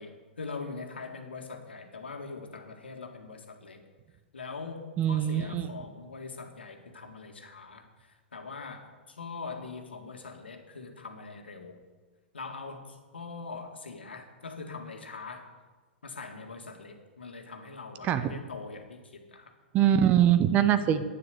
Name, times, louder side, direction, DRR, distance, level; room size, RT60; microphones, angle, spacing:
voice 1, 0.0-3.8 4.3-11.8 12.3-15.5 16.0-19.5, left 4 dB, 70° left, 4 dB, 1.9 m, -42 dB
voice 2, 5.0-5.6 18.0-18.3 19.7-21.0, right 10 dB, 25° right, 12 dB, 0.8 m, -23 dB
11.0 x 9.7 x 6.8 m, 1.3 s
figure-of-eight pair, 105°, 6 cm